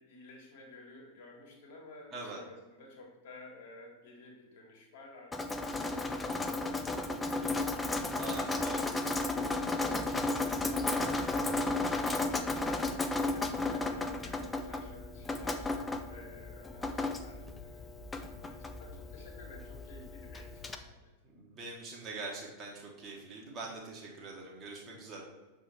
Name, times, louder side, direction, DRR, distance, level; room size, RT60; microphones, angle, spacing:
voice 1, 0.0-9.4 9.8-20.9, left 2 dB, 55° left, -1 dB, 1.7 m, -53 dB
Drip, 5.3-20.8, left 2 dB, 10° left, 0.5 m, -34 dB
voice 2, 8.2-8.9 21.2-25.2, right 3 dB, 25° right, -2 dB, 1.1 m, -43 dB
6.6 x 3.5 x 4.3 m, 1.2 s
figure-of-eight pair, 90°, 0 cm